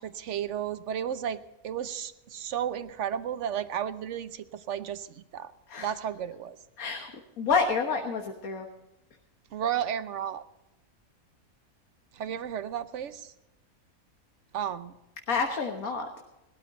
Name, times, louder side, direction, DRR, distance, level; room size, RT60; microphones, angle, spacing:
voice 1, 0.0-5.5 5.8-6.6 9.5-10.4 12.1-13.3 14.5-14.9, right 9 dB, 60° right, 13 dB, 1.1 m, -33 dB
voice 2, 6.8-7.1 7.4-8.7 15.3-16.1, left 5 dB, 75° left, 3 dB, 1.8 m, -28 dB
19.5 x 13.0 x 3.9 m, 0.95 s
omnidirectional pair, 1.5 m